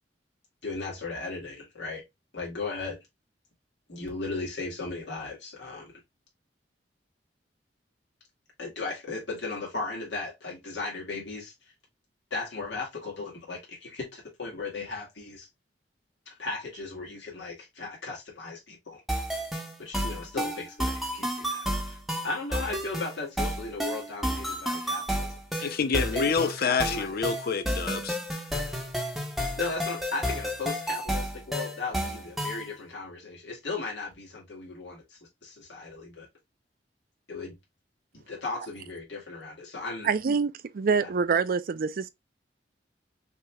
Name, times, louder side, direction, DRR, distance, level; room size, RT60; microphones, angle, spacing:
voice 1, 0.6-2.0 2.3-3.0 3.9-5.9 8.6-11.5 12.3-15.5 16.3-19.0 19.8-25.8 26.1-27.1 29.6-36.3 37.3-37.6 38.1-40.1 41.0-41.1, left 3 dB, 80° left, 2.1 m, -36 dB
sound 1, 19.1-32.7, equal, ahead, 0.9 m, -31 dB
voice 2, 25.6-28.2, left 5 dB, 60° left, 0.6 m, -27 dB
voice 3, 40.0-42.1, right 5 dB, 55° right, 0.4 m, -26 dB
5.9 x 2.9 x 2.3 m
head